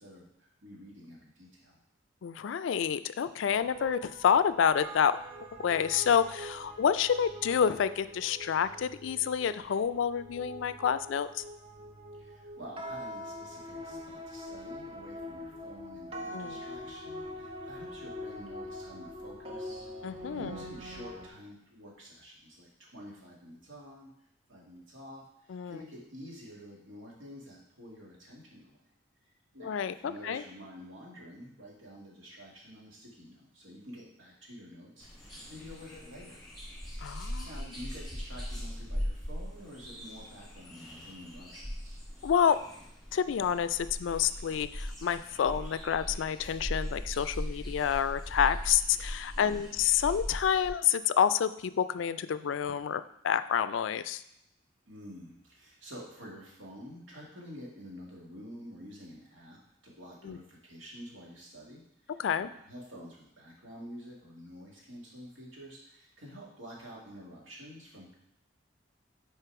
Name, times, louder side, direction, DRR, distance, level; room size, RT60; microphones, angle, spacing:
voice 1, 0.0-1.8 12.1-24.1 24.5-28.8 29.5-35.1 35.5-36.4 37.4-42.0 49.3-49.8 54.9-68.1, equal, 85° right, -3 dB, 2.1 m, -49 dB
voice 2, 2.2-5.2 5.6-11.4 16.3-16.6 20.0-20.5 25.5-25.8 29.6-29.9 30.2-30.4 37.0-37.5 42.2-42.6 43.1-54.2 60.2-60.4 62.2-62.5, left 8 dB, 70° left, 14 dB, 0.3 m, -28 dB
sound 1, 3.5-21.3, equal, 30° right, 0.7 m, -44 dB
sound 2, 35.0-50.7, equal, ahead, 1.7 m, -40 dB
6.7 x 4.5 x 4.7 m, 0.76 s
head